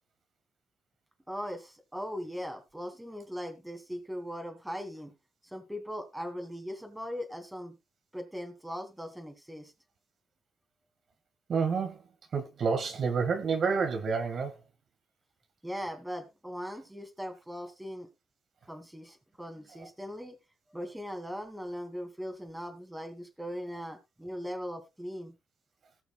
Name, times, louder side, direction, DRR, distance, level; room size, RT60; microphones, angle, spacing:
voice 1, 1.3-5.1 5.4-7.8 8.1-9.7 15.6-18.1 18.7-20.4 20.7-25.3, equal, 5° right, 2.8 m, -39 dB
voice 2, 11.5-12.0 12.3-14.5, right 5 dB, 55° right, 2.0 m, -29 dB
18.5 x 6.9 x 2.4 m
cardioid pair, 90°, 0 cm